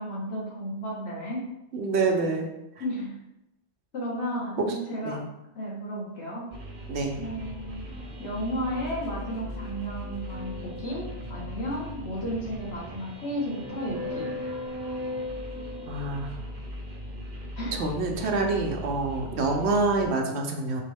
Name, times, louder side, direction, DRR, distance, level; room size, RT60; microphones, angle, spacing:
voice 1, 0.0-1.4 2.8-3.1 3.9-4.6 4.9-5.2 5.5-6.5 7.2-7.9 8.2-14.3 17.6-17.8, equal, 70° left, -5 dB, 1.6 m, -33 dB
voice 2, 1.7-2.5 4.6-4.8 5.0-5.2 6.9-7.2 15.9-16.4 17.7-20.8, right 3 dB, 75° right, 2 dB, 1.0 m, -27 dB
sound 1, 6.5-20.0, equal, 50° right, 0.8 m, -38 dB
4.5 x 3.1 x 3.4 m, 0.88 s
omnidirectional pair, 1.1 m